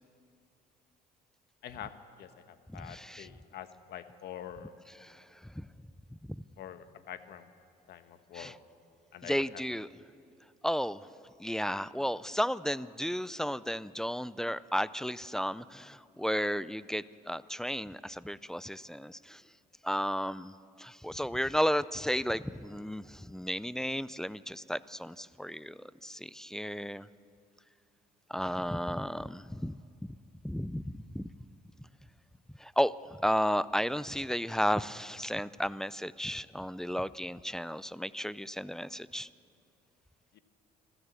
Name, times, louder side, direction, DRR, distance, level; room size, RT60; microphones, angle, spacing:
voice 1, 1.6-4.7 6.6-7.5 7.9-8.6 9.1-9.6 40.3-40.4, left 10 dB, 70° left, 10 dB, 1.3 m, -46 dB
voice 2, 2.7-3.3 5.0-5.7 6.3-6.4 8.3-8.5 9.2-9.9 10.6-11.1 11.4-19.4 19.8-27.1 28.3-30.2 30.4-31.3 32.6-39.3, equal, 5° left, 18 dB, 0.4 m, -33 dB
26.0 x 14.5 x 8.2 m, 2.5 s
cardioid pair, 110°, 17 cm